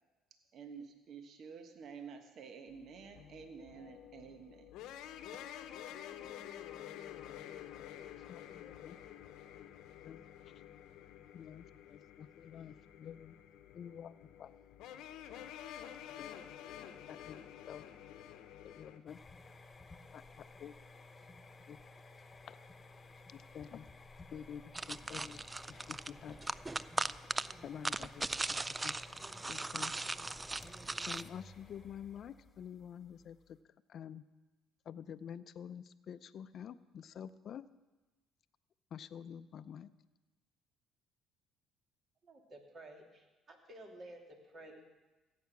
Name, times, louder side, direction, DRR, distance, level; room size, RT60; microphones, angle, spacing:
voice 1, 0.5-4.7, right 6 dB, 60° right, 6 dB, 1.2 m, -50 dB
sound 1, 2.7-19.0, left 10 dB, 75° left, 0.8 m, -50 dB
voice 2, 8.0-9.0 9.5-9.7 10.0-10.5 11.3-13.4 13.7-14.5 16.0-16.4 16.7-18.1 18.6-19.2 20.1-20.7 21.7-21.8 22.5-22.6 23.3-23.9 24.3-26.4 27.6-28.6 28.8-29.9 31.1-33.6 33.9-34.2 34.9-37.7 38.9-39.9, left 8 dB, 55° left, 14 dB, 0.5 m, -49 dB
sound 2, 19.1-33.6, left 3 dB, 25° left, 1.2 m, -56 dB
sound 3, 24.7-31.2, right 2 dB, 20° right, 0.3 m, -39 dB
voice 3, 42.2-44.8, right 1 dB, 45° right, 2 dB, 2.7 m, -53 dB
16.0 x 8.5 x 6.0 m, 1.2 s
supercardioid pair, 80°, 0 cm